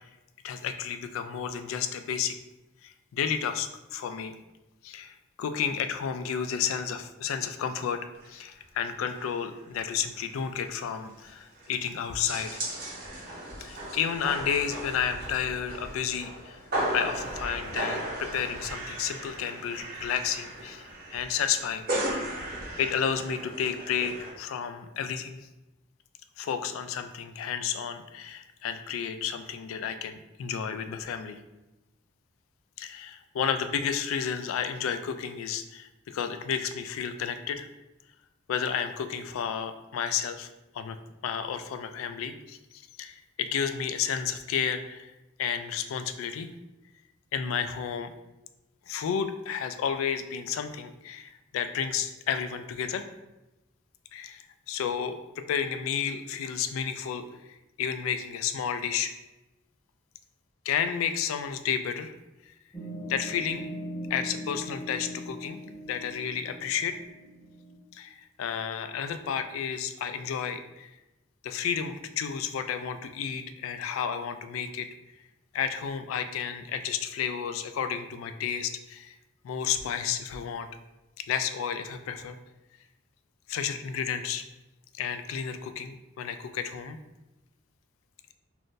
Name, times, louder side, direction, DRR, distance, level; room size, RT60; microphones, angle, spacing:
voice 1, 0.4-2.4 2.8-4.3 4.8-8.0 8.3-12.6 13.6-16.6 16.9-21.8 22.8-25.4 26.4-31.4 32.8-37.7 38.5-40.5 40.7-41.0 41.2-42.6 43.0-45.1 45.4-46.5 47.3-48.1 48.9-53.1 54.1-57.2 57.8-59.1 60.7-62.1 63.1-63.7 64.1-65.6 65.9-67.0 67.9-70.9 71.4-74.9 75.5-79.1 79.4-80.7 81.3-82.4 83.5-84.4 84.9-87.0, left 7 dB, 90° left, 9 dB, 0.3 m, -31 dB
sound 1, 8.2-8.4 8.6-8.7 9.2-9.5 9.8-9.9 10.1-24.3, right 1 dB, 45° right, 1.0 m, -36 dB
sound 2, 62.7-67.7, equal, 10° left, 0.7 m, -40 dB
2.5 x 2.5 x 3.6 m, 0.98 s
head